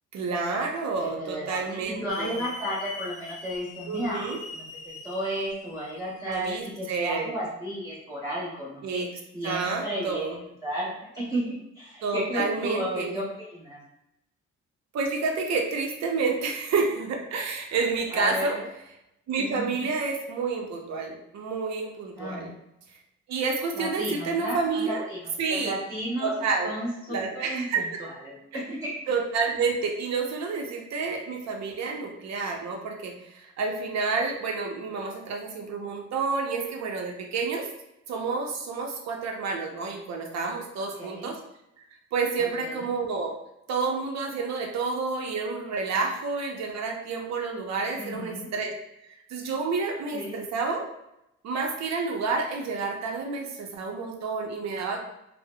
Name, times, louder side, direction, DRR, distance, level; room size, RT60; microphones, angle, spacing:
voice 1, 0.1-2.4 3.9-4.4 6.2-7.4 8.8-9.1 9.4-10.4 12.0-13.2 14.9-18.6 19.3-22.5 23.3-25.0 25.4-25.7 26.2-26.7 27.1-27.8 28.5-28.6 29.1-37.7 38.1-41.4 42.1-43.4 43.7-48.7 49.3-50.8 51.4-55.0, right 4 dB, 60° right, 2 dB, 0.6 m, -29 dB
voice 2, 1.0-4.2 4.5-9.0 9.3-10.3 10.6-13.8 18.1-18.7 19.4-19.9 22.2-22.5 23.7-26.4 26.6-28.9 40.8-41.3 42.4-42.9 48.0-48.5 50.1-50.4, equal, 10° right, -11 dB, 1.2 m, -33 dB
Hiss / Alarm, 2.1-6.9, left 4 dB, 25° left, 0.4 m, -42 dB
3.3 x 2.0 x 2.2 m, 0.84 s
cardioid pair, 90°, 30 cm